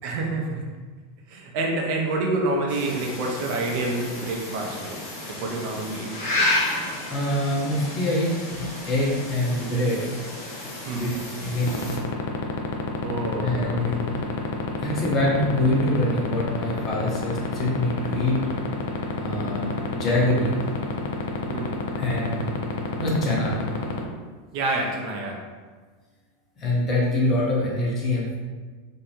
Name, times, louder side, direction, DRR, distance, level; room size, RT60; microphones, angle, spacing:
voice 1, 0.0-0.7 1.3-5.0 5.3-6.5 10.9-11.1 13.0-14.0 19.3-19.5 21.5-21.8 24.5-25.5, right 2 dB, 60° right, 0 dB, 0.5 m, -28 dB
sound 1, 2.7-12.0, left 2 dB, 85° left, 1.1 m, -31 dB
voice 2, 7.1-10.0 10.9-11.1 11.4-11.7 13.4-14.2 14.8-18.4 19.2-20.6 22.0-22.5 23.0-23.6 26.6-28.3, left 1 dB, 35° left, -4 dB, 0.9 m, -24 dB
sound 2, 11.7-24.0, left 6 dB, 70° left, 0.4 m, -27 dB
2.6 x 2.1 x 2.9 m, 1.4 s
hypercardioid pair, 110°, 0 cm